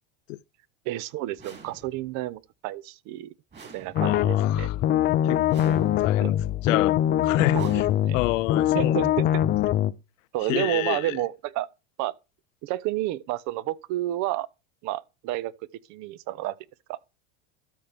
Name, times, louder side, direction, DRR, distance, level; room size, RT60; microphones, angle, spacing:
voice 1, 0.9-3.3 3.7-4.7 6.2-6.3 7.5-8.2 8.7-9.3 10.3-11.7 12.0-12.1 12.6-14.5 14.8-15.5 15.9-16.6 16.9-17.0, right 15 dB, 50° right, 0.6 m, -30 dB
sound 1, 1.4-2.2 3.5-4.4 5.5-6.3 7.5-8.4, right 4 dB, 30° right, 3.1 m, -48 dB
sound 2, 3.9-9.9, left 11 dB, 25° left, 0.4 m, -23 dB
voice 2, 4.0-4.7 5.2-7.0 7.2-7.6 8.1-9.0 10.5-11.2, left 20 dB, 85° left, 0.5 m, -28 dB
12.5 x 5.9 x 3.4 m
supercardioid pair, 125°, 37 cm